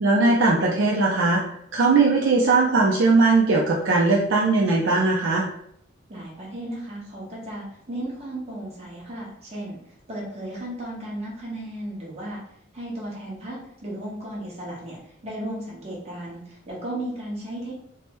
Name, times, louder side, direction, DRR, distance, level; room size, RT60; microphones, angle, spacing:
voice 1, 0.0-1.4 1.7-5.4, right 3 dB, 65° right, -3 dB, 0.5 m, -19 dB
voice 2, 6.1-9.8 10.1-12.4 12.7-17.7, right 1 dB, 35° right, -5 dB, 1.1 m, -35 dB
3.3 x 2.1 x 2.9 m, 0.70 s
head